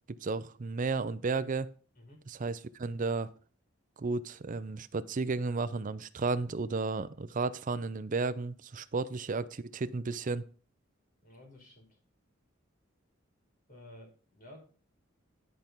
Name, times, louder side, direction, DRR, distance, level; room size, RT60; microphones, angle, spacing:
voice 1, 0.1-1.7 2.3-3.3 4.0-10.4, right 4 dB, 40° right, 0.5 m, -33 dB
voice 2, 11.2-12.0 13.7-14.6, left 1 dB, 45° left, 2.8 m, -53 dB
10.0 x 4.5 x 5.3 m
head